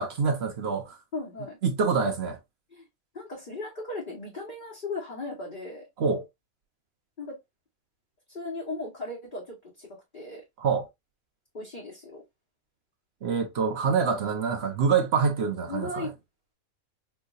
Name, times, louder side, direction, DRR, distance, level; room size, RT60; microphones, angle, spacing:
voice 1, 0.0-0.9 1.6-2.4 6.0-6.2 10.6-10.9 13.2-16.1, right 5 dB, 55° right, 0.8 m, -26 dB
voice 2, 1.1-1.6 2.7-2.9 3.1-5.9 7.2-7.4 8.3-9.9 10.1-10.4 11.5-12.2 15.6-16.1, left 2 dB, 40° left, 1.3 m, -37 dB
4.6 x 2.6 x 2.3 m
omnidirectional pair, 1.5 m